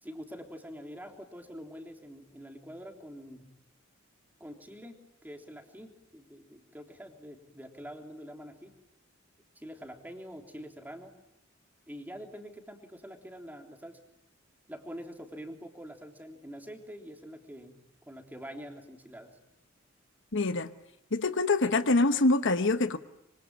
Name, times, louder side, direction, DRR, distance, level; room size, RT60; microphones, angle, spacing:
voice 1, 0.0-3.5 4.4-8.8 9.5-11.1 11.9-14.0 14.7-19.3, equal, 10° right, 3.4 m, -45 dB
voice 2, 20.3-20.7 21.1-23.0, left 2 dB, 65° left, 1.1 m, -25 dB
26.0 x 25.0 x 8.7 m
head